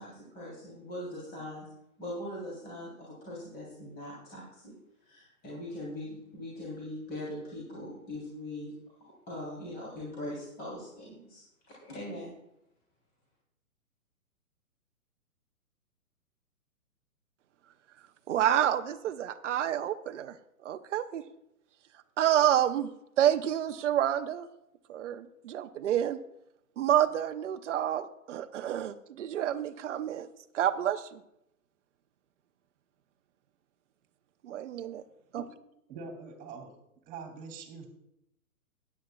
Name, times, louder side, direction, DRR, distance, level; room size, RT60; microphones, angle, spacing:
voice 1, 0.0-1.7 2.0-4.7 5.0-8.7 9.0-12.3, left 1 dB, 20° left, -6 dB, 3.5 m, -41 dB
voice 2, 18.3-20.3 20.6-21.2 22.2-22.9 23.2-24.5 24.9-26.2 26.8-30.3 30.5-31.2 34.4-35.0 35.3-35.4, right 10 dB, 55° right, 9 dB, 0.8 m, -28 dB
voice 3, 35.9-36.7 37.0-37.9, right 5 dB, 20° right, 4 dB, 2.7 m, -43 dB
16.0 x 10.0 x 2.3 m, 0.81 s
hypercardioid pair, 130°, 44 cm